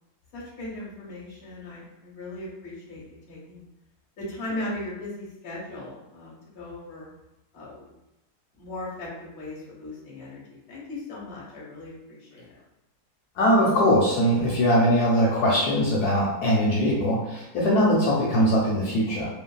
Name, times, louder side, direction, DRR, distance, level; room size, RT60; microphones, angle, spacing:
voice 1, 0.3-3.7 4.2-7.1 7.5-7.9 8.5-12.6, left 1 dB, 50° left, -5 dB, 1.0 m, -38 dB
voice 2, 13.4-19.3, equal, 75° left, -4 dB, 1.1 m, -21 dB
2.6 x 2.6 x 2.2 m, 0.88 s
omnidirectional pair, 1.8 m